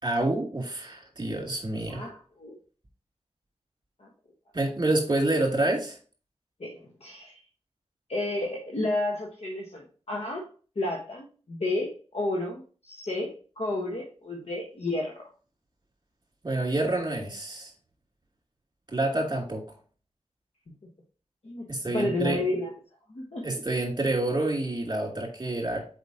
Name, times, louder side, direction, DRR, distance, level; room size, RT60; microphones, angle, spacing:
voice 1, 0.0-2.1 4.5-6.0 16.4-17.7 18.9-19.6 21.7-22.4 23.4-25.9, right 2 dB, 35° right, -1 dB, 2.8 m, -28 dB
voice 2, 1.9-2.6 4.0-4.1 6.6-7.4 8.1-10.5 10.7-15.3 21.4-22.7 23.1-23.5, left 2 dB, 60° left, -1 dB, 1.3 m, -31 dB
6.4 x 5.2 x 2.8 m, 0.38 s
wide cardioid pair, 60°, 12 cm